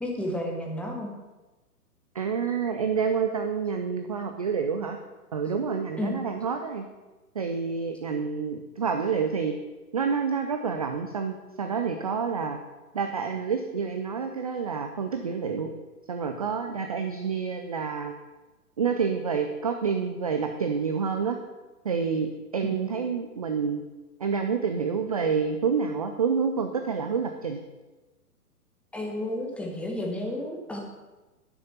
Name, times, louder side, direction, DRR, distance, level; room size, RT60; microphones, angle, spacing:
voice 1, 0.0-1.1 6.0-6.2 22.6-22.8 28.9-30.8, left 1 dB, 5° left, -1 dB, 1.3 m, -32 dB
voice 2, 2.1-5.0 5.3-6.9 7.3-9.6 9.9-12.6 12.9-15.7 16.1-18.1 18.8-21.4 21.8-23.8 24.2-27.6, right 6 dB, 25° right, 5 dB, 0.4 m, -28 dB
10.5 x 6.4 x 7.1 m, 1.2 s
figure-of-eight pair, 115°, 46 cm